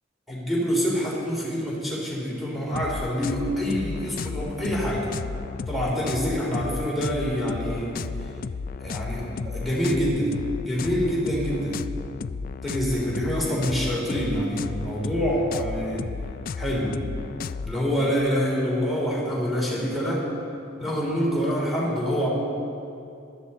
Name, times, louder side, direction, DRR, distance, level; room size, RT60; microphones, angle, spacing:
voice 1, 0.3-5.1 5.7-8.0 8.8-10.3 10.6-11.8 12.6-16.1 16.6-17.0 17.6-20.3 20.8-22.3, equal, ahead, -4 dB, 3.2 m, -26 dB
sound 1, 2.7-17.7, left 5 dB, 45° left, 0.3 m, -33 dB
16.5 x 12.5 x 4.3 m, 2.6 s
head